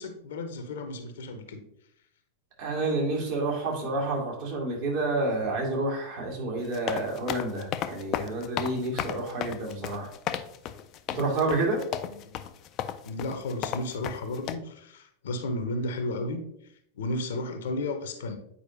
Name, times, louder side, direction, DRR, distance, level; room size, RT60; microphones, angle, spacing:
voice 1, 0.0-1.6 12.1-12.3 13.0-18.4, left 2 dB, 60° left, 7 dB, 0.8 m, -33 dB
voice 2, 2.6-10.1 11.1-11.8, right 2 dB, 50° right, -1 dB, 1.9 m, -29 dB
sound 1, 6.6-14.5, left 10 dB, 35° left, 0.4 m, -33 dB
8.5 x 4.6 x 2.7 m, 0.73 s
figure-of-eight pair, 90°, 0 cm